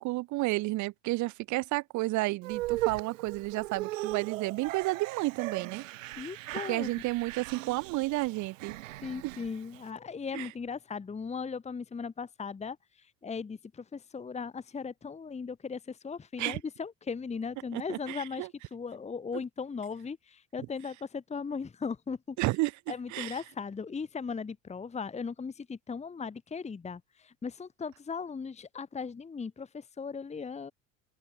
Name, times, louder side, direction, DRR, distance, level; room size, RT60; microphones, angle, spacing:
voice 1, 0.0-5.8 6.5-8.8 9.2-9.4 10.3-10.5 16.4-16.6 17.7-18.5 22.4-22.7 23.1-23.4, right 20 dB, 50° right, 0.7 m, -31 dB
sound 1, 2.4-9.8, right 17 dB, 90° right, 1.4 m, -38 dB
voice 2, 6.2-6.9 9.0-22.4 22.9-30.7, left 5 dB, 15° left, 1.3 m, -38 dB
open air
supercardioid pair, 90°, 38 cm